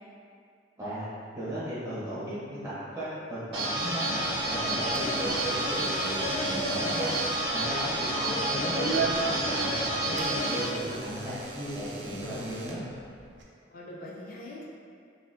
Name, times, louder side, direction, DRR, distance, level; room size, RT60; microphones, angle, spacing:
voice 1, 0.8-1.1 1.3-2.2 2.5-7.1 7.5-12.8, equal, 15° right, -12 dB, 1.1 m, -36 dB
sound 1, 3.5-10.6, right 1 dB, 55° right, 1.4 m, -29 dB
Door / Alarm, 4.2-13.4, right 3 dB, 75° right, 0.5 m, -39 dB
voice 2, 7.9-8.5 13.7-14.6, left 2 dB, 50° left, -4 dB, 0.4 m, -41 dB
4.0 x 2.7 x 2.7 m, 2.3 s
head